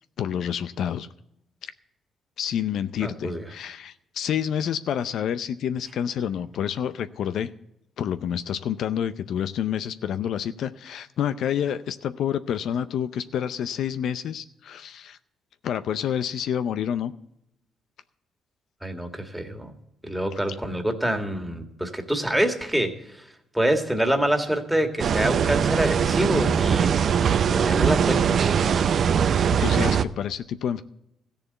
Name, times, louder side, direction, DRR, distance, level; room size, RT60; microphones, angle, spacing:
voice 1, 0.2-1.1 1.6-1.7 2.4-7.5 8.0-15.2 15.6-17.1 29.6-30.8, left 9 dB, 70° left, 12 dB, 0.5 m, -28 dB
voice 2, 3.0-3.4 18.8-19.7 20.0-22.9 23.5-26.9 27.5-28.5, right 1 dB, 5° right, 5 dB, 1.9 m, -26 dB
sound 1, 25.0-30.0, right 7 dB, 55° right, 0.6 m, -21 dB
14.5 x 6.9 x 7.9 m, 0.83 s
cardioid pair, 90°, 0 cm